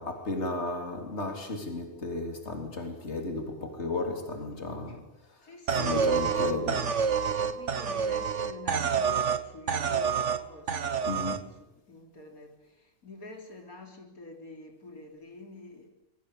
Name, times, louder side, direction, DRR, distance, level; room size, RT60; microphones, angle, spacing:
voice 1, 0.0-5.0 5.3-5.5 5.8-6.8 11.1-11.5, left 2 dB, 50° left, 3.8 m, -34 dB
voice 2, 5.4-6.7 7.4-15.9, left 2 dB, 90° left, 4.4 m, -47 dB
sound 1, 5.7-9.4 9.7-10.4 10.7-11.4, right 6 dB, 55° right, 1.6 m, -27 dB
26.0 x 22.5 x 8.5 m
omnidirectional pair, 1.5 m